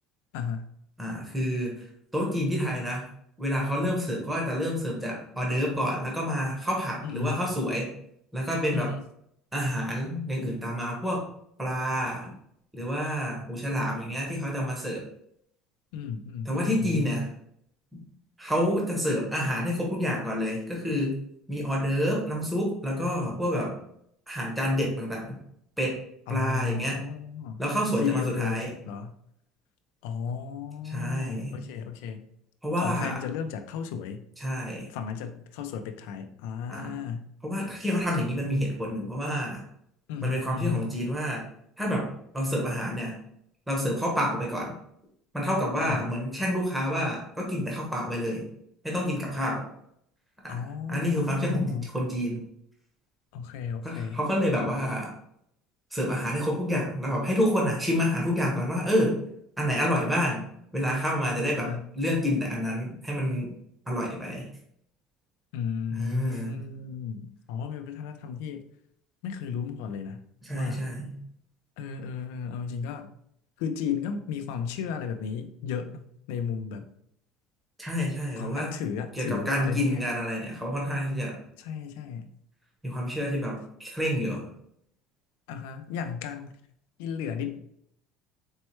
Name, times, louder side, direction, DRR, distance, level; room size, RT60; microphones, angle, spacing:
voice 1, 0.3-0.7 7.0-7.5 8.7-9.0 15.9-17.2 26.3-27.6 28.0-29.2 30.0-32.3 32.8-34.2 34.9-37.3 40.1-41.0 45.8-46.1 50.5-52.0 53.3-54.2 61.4-61.9 65.5-68.7 69.2-70.3 70.5-70.9 71.8-73.1 73.6-76.9 78.4-80.0 81.6-82.3 85.5-86.6 87.0-87.6, left 7 dB, 85° left, 8 dB, 0.5 m, -34 dB
voice 2, 1.0-1.9 2.1-3.1 3.4-7.9 8.3-8.9 9.5-11.2 11.6-12.3 12.7-15.0 16.5-17.3 17.9-18.0 18.4-21.2 21.5-23.7 24.3-25.4 25.8-26.0 26.3-27.0 27.6-28.7 30.8-31.6 32.6-33.2 34.4-34.9 36.7-37.0 37.4-39.6 40.2-41.4 41.8-43.2 43.7-44.7 45.3-48.5 48.8-49.7 50.4-50.6 50.9-52.4 53.8-55.1 55.9-59.2 59.6-60.5 60.7-63.5 63.9-64.5 66.0-66.6 70.4-71.2 77.8-78.7 79.1-81.4 82.8-84.5, equal, 5° right, -2 dB, 0.9 m, -28 dB
4.4 x 3.1 x 3.1 m, 0.71 s
cardioid pair, 165°, 0 cm